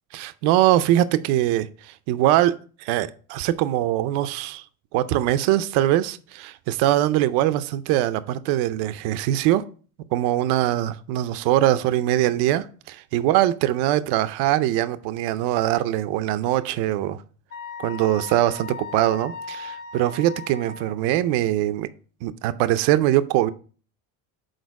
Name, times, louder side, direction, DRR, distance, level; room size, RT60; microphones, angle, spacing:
voice 1, 0.1-4.6 4.9-9.6 10.1-17.2 17.8-21.9 22.2-23.5, right 13 dB, 80° right, 0.6 m, -22 dB
Wind instrument woodwind instrument, 17.5-21.0, left 4 dB, 25° left, 0.6 m, -37 dB
6.5 x 4.5 x 4.6 m
cardioid pair, 140°, 39 cm